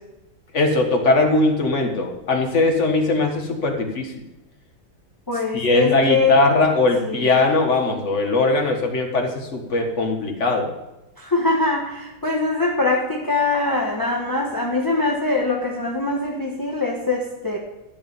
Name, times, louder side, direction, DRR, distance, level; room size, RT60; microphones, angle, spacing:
voice 1, 0.5-4.1 5.5-10.7, left 2 dB, 35° left, 2 dB, 1.7 m, -20 dB
voice 2, 5.3-6.4 7.0-7.3 11.2-17.6, left 3 dB, 15° left, -1 dB, 0.8 m, -23 dB
12.5 x 6.1 x 7.3 m, 0.97 s
omnidirectional pair, 2.4 m